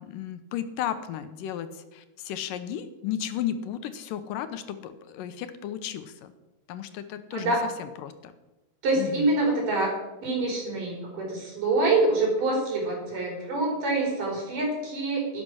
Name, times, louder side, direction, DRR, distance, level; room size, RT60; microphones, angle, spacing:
voice 1, 0.0-6.3 6.7-7.5 7.8-8.3 9.0-9.3, left 10 dB, 80° left, 10 dB, 2.4 m, -34 dB
voice 2, 8.8-9.9 10.2-15.4, right 2 dB, 65° right, -1 dB, 5.9 m, -26 dB
11.5 x 11.0 x 6.3 m, 1.0 s
omnidirectional pair, 4.0 m